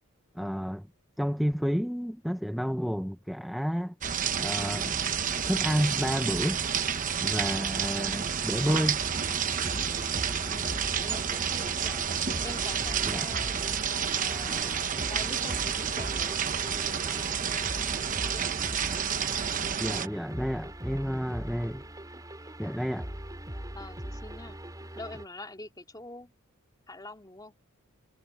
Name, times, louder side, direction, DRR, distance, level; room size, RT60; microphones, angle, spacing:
voice 1, 0.3-0.9 1.2-3.9 4.4-5.0 5.5-6.6 7.2-9.0 13.1-13.3 19.8-21.8 22.6-23.1, equal, ahead, 0.6 m, -30 dB
sound 1, 4.0-20.1, right 7 dB, 35° right, 0.9 m, -30 dB
sound 2, 9.0-25.3, right 1 dB, 15° right, 3.3 m, -41 dB
voice 2, 10.5-12.0 12.4-13.6 14.1-16.4 16.7-18.6 23.7-24.6 24.9-26.3 26.9-27.6, left 2 dB, 20° left, 3.0 m, -45 dB
head